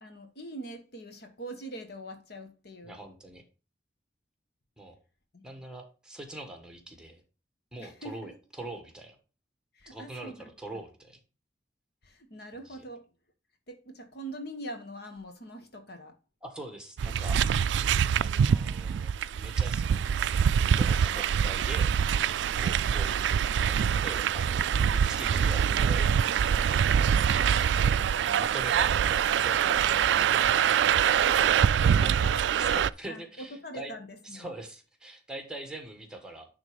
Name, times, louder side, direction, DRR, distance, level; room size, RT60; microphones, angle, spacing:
voice 1, 0.0-3.0 5.3-5.5 7.8-8.3 9.7-10.5 12.0-13.1 13.7-16.2 31.0-34.5, right 1 dB, 60° left, 1.4 m, -43 dB
voice 2, 2.8-3.4 4.8-5.0 5.4-7.2 7.7-8.3 8.6-9.2 9.9-11.2 12.7-12.8 16.4-17.4 18.2-20.0 20.7-21.9 22.6-24.6 24.9-27.9 28.2-30.5 31.8-32.1 32.6-33.9 34.2-36.5, right 1 dB, 5° right, 1.5 m, -43 dB
sound 1, 17.0-32.9, right 8 dB, 80° right, 0.3 m, -24 dB
10.5 x 3.6 x 5.1 m
head